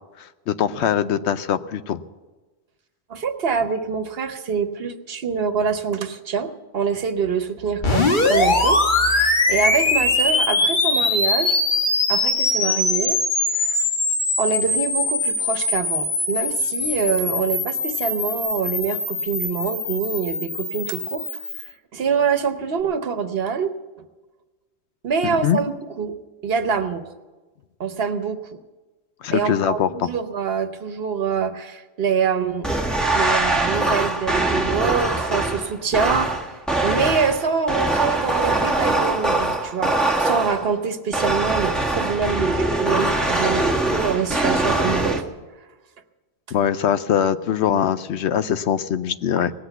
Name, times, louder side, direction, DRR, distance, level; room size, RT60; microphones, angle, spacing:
voice 1, 0.2-2.0 25.2-25.6 29.2-30.1 46.5-49.5, left 9 dB, 85° left, 13 dB, 1.0 m, -22 dB
voice 2, 3.1-11.6 12.1-13.2 13.6-13.8 14.4-21.3 21.9-23.7 25.0-26.2 26.4-27.1 27.8-28.4 29.3-32.7 33.1-36.3 36.8-45.2, right 6 dB, 65° right, 9 dB, 1.1 m, -25 dB
sound 1, 7.8-21.7, left 2 dB, 45° left, 1.5 m, -22 dB
sound 2, 32.6-40.7 41.1-45.2, right 2 dB, ahead, 1.1 m, -22 dB
19.0 x 8.1 x 8.1 m, 1.2 s
omnidirectional pair, 1.1 m